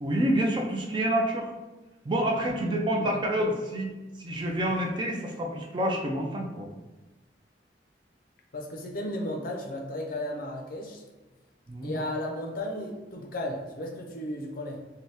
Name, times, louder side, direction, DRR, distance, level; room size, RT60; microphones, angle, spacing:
voice 1, 0.0-1.5 2.0-3.9 4.2-6.7 11.7-11.9, right 1 dB, 25° right, 1 dB, 0.4 m, -28 dB
voice 2, 3.0-3.5 8.5-11.0 11.8-14.8, left 1 dB, 55° left, 1 dB, 0.5 m, -35 dB
2.7 x 2.2 x 3.3 m, 1.2 s
head